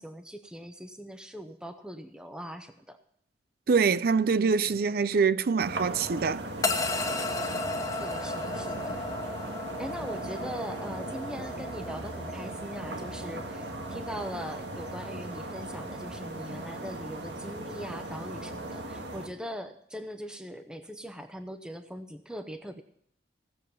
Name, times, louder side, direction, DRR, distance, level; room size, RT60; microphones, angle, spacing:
voice 1, 0.0-3.0 8.0-9.0 9.8-22.8, equal, 5° right, 0.8 m, -41 dB
voice 2, 3.7-6.4, right 5 dB, 55° right, 0.5 m, -24 dB
sound 1, 5.6-19.3, right 1 dB, 75° right, 1.6 m, -38 dB
sound 2, 6.6-17.0, left 2 dB, 20° left, 1.2 m, -36 dB
17.5 x 7.4 x 5.4 m
head